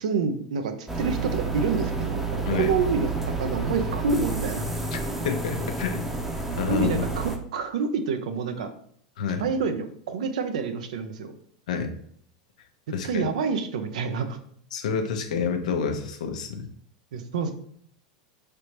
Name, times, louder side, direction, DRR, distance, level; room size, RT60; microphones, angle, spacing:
voice 1, 0.0-4.7 6.7-8.7 9.4-11.3 13.0-14.4 17.1-17.5, right 5 dB, 80° right, 8 dB, 0.6 m, -28 dB
sound 1, 0.9-7.4, right 3 dB, 5° right, 0.7 m, -30 dB
voice 2, 4.9-6.1 6.6-7.1 9.2-9.4 11.7-11.9 12.9-13.3 14.7-16.7, left 6 dB, 80° left, 6 dB, 0.7 m, -28 dB
5.0 x 3.4 x 2.9 m, 0.64 s
hypercardioid pair, 110°, 4 cm